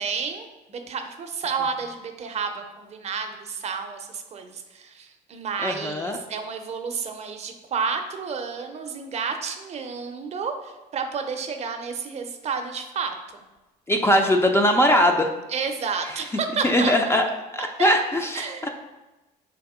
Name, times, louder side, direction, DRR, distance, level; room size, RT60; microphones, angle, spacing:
voice 1, 0.0-13.2 15.5-17.2 17.6-17.9 18.3-18.7, right 5 dB, 40° right, 6 dB, 0.5 m, -31 dB
voice 2, 5.6-6.2 13.9-15.3 16.6-17.2 17.5-18.7, equal, 15° left, 3 dB, 0.3 m, -20 dB
3.5 x 2.9 x 4.8 m, 1.1 s
cardioid pair, 110°, 17 cm